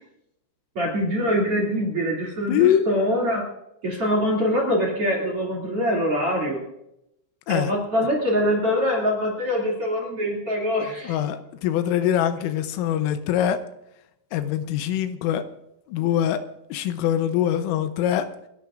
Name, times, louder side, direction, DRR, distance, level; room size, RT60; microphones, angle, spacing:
voice 1, 0.7-3.5 3.8-6.6 7.5-11.2, equal, 40° right, -1 dB, 2.5 m, -24 dB
voice 2, 2.5-2.9 7.5-7.7 11.0-13.6 14.3-15.4 15.9-16.4 16.7-18.3, left 10 dB, 85° left, 10 dB, 3.4 m, -23 dB
29.0 x 11.5 x 2.5 m, 0.82 s
omnidirectional pair, 5.9 m